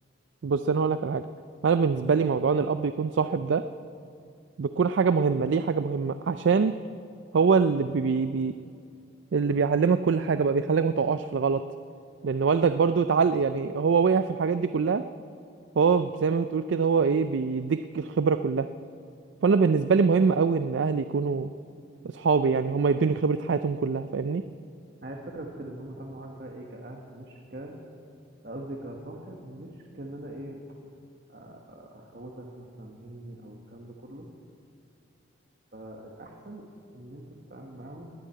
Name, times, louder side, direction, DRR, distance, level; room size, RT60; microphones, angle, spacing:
voice 1, 0.4-1.3 1.6-3.7 4.6-6.7 7.3-8.5 9.3-11.6 12.2-15.0 15.8-18.7 19.4-21.5 22.1-24.4, right 5 dB, 75° right, 11 dB, 0.4 m, -24 dB
voice 2, 25.0-27.8 28.4-30.6 31.3-34.3 35.7-36.6 36.9-38.1, right 1 dB, 50° right, 0 dB, 1.4 m, -42 dB
20.0 x 7.5 x 8.9 m, 2.4 s
head